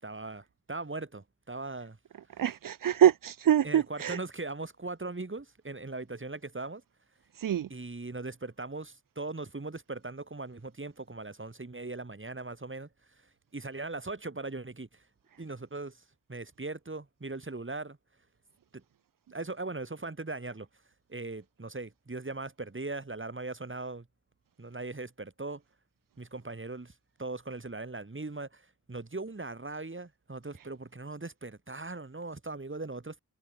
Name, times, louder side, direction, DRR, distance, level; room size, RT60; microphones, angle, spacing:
voice 1, 0.0-2.0 3.6-6.8 7.7-12.9 13.5-15.0 15.4-16.0 16.3-18.0 18.7-18.8 19.3-20.7 21.1-24.1 24.6-25.6 26.2-26.9 27.2-33.2, right 3 dB, 35° right, 4.9 m, -39 dB
voice 2, 2.4-4.2 7.4-7.7, right 10 dB, 80° right, 0.5 m, -25 dB
wide cardioid pair, 80°, 33 cm